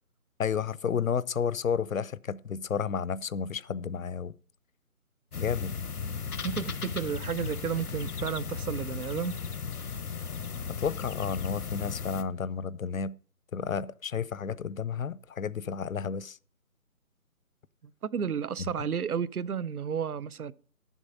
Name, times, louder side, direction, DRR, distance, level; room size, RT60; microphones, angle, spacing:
voice 1, 0.4-4.3 5.3-5.7 10.6-13.1 13.5-16.4 18.6-18.9, left 6 dB, 65° left, 0.6 m, -31 dB
sound 1, 5.3-12.2, left 6 dB, 85° left, 1.0 m, -36 dB
voice 2, 6.4-9.3 17.8-20.5, right 7 dB, 75° right, 0.8 m, -32 dB
12.0 x 7.3 x 5.3 m
hypercardioid pair, 180°, 44 cm